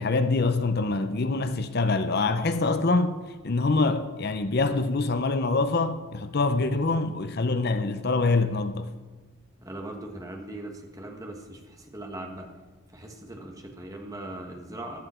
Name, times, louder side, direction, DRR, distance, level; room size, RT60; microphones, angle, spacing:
voice 1, 0.0-8.9, left 3 dB, 45° left, 0.6 m, -25 dB
voice 2, 9.6-12.5 12.9-15.0, right 1 dB, 15° right, 1.4 m, -39 dB
14.5 x 11.5 x 4.4 m
head